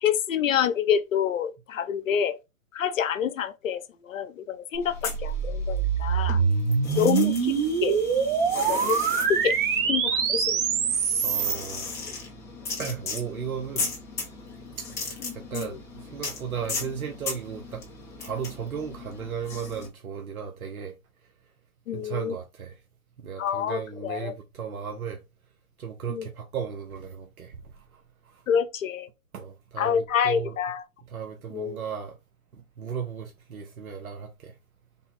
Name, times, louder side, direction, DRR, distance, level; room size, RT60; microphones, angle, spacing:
voice 1, 0.0-2.4 2.7-6.4 6.9-7.5 7.8-8.0 8.6-9.6 9.9-10.6 15.5-15.7 21.9-22.3 23.4-24.3 26.1-26.3 28.5-29.1 29.8-30.8 31.5-31.8, left 8 dB, 65° left, 0.7 m, -27 dB
sound 1, 4.7-11.6, right 6 dB, 40° right, 0.8 m, -25 dB
sound 2, 4.9-6.0 6.3-19.9, left 4 dB, 5° left, 0.5 m, -37 dB
voice 2, 6.3-7.0 11.2-11.9 12.8-13.9 14.8-17.8 18.2-20.9 21.9-22.8 23.2-25.2 25.8-27.6 28.3-28.4 29.3-30.6 31.1-32.2 32.8-34.5, right 7 dB, 85° right, 0.7 m, -35 dB
3.5 x 2.1 x 4.1 m
figure-of-eight pair, 120°, 42 cm